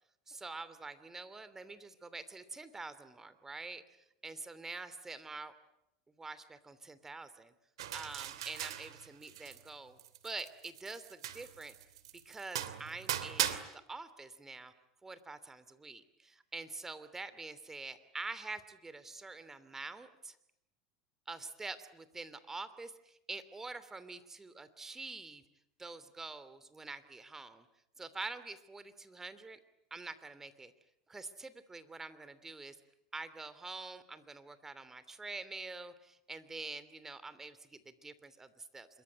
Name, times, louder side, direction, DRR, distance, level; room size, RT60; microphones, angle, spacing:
voice 1, 0.3-3.8 4.2-5.5 6.2-7.5 7.9-10.0 10.2-11.8 12.2-14.7 15.0-20.4 21.3-25.4 25.8-27.7 28.0-29.6 29.9-30.7 31.1-32.8 33.1-38.9, right 3 dB, 15° right, 13 dB, 2.9 m, -46 dB
sound 1, 7.8-9.7 10.0-13.6, right 12 dB, 80° right, 2.6 m, -39 dB
26.5 x 23.0 x 9.4 m, 0.79 s
hypercardioid pair, 95°, 3 cm